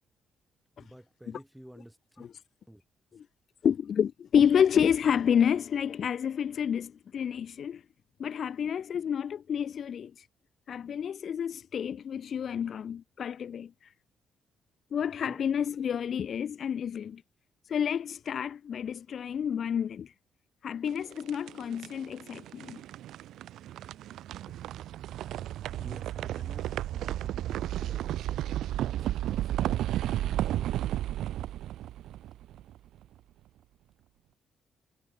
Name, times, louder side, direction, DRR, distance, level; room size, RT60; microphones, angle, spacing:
voice 1, 0.8-2.2 2.7-2.8 15.2-15.4 25.8-30.7, equal, 5° right, 6.9 m, -51 dB
voice 2, 3.6-7.8 8.2-10.1 10.7-13.7 14.9-17.2 17.7-20.1 20.6-22.8, left 8 dB, 55° left, 0.8 m, -29 dB
sound 1, 20.9-33.0, right 13 dB, 80° right, 2.9 m, -33 dB
cardioid pair, 90°, 0 cm